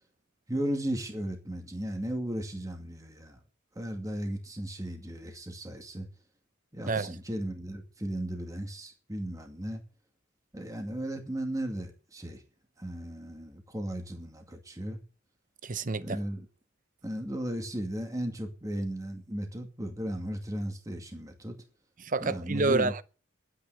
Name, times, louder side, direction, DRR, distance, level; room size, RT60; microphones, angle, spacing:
voice 1, 0.5-3.4 3.8-6.1 6.7-9.8 10.5-12.4 12.8-15.0 16.0-16.5 17.0-21.6 22.2-22.9, right 1 dB, 15° right, 2.3 m, -35 dB
voice 2, 15.6-16.2 22.0-23.0, right 3 dB, 40° right, 0.7 m, -28 dB
12.0 x 9.8 x 8.1 m
head